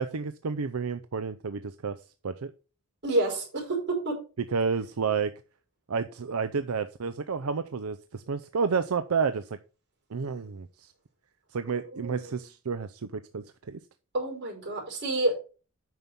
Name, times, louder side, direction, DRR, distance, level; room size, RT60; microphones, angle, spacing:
voice 1, 0.0-2.0 2.2-2.5 4.5-5.3 5.9-9.5 10.1-10.9 11.5-13.8, right 5 dB, 80° right, 11 dB, 0.6 m, -30 dB
voice 2, 3.0-4.1 11.6-12.4 14.1-15.4, right 2 dB, 55° right, 1 dB, 5.0 m, -29 dB
9.2 x 6.1 x 5.3 m, 0.35 s
head